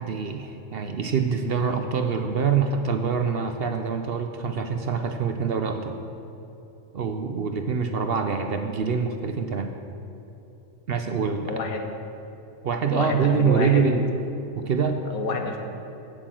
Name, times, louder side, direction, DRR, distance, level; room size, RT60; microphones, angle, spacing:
voice 1, 0.0-6.0 6.9-9.7 10.9-11.6 12.6-14.1 14.5-15.0, right 6 dB, 55° right, 6 dB, 0.7 m, -25 dB
voice 2, 11.5-11.8 12.9-13.8 15.1-15.6, left 4 dB, 90° left, 4 dB, 1.5 m, -29 dB
8.6 x 7.8 x 7.6 m, 2.9 s
omnidirectional pair, 1.4 m